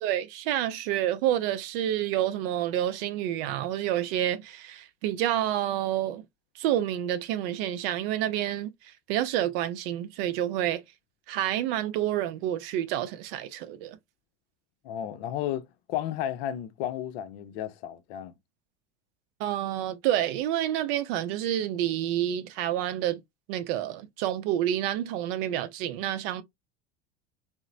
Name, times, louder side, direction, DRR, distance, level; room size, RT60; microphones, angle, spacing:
voice 1, 0.0-6.2 6.6-10.8 11.3-14.0 19.4-23.2 23.5-26.4, right 12 dB, 60° right, 0.5 m, -28 dB
voice 2, 14.8-18.3, left 11 dB, 60° left, 0.6 m, -33 dB
2.9 x 2.0 x 2.4 m
hypercardioid pair, 80°, 34 cm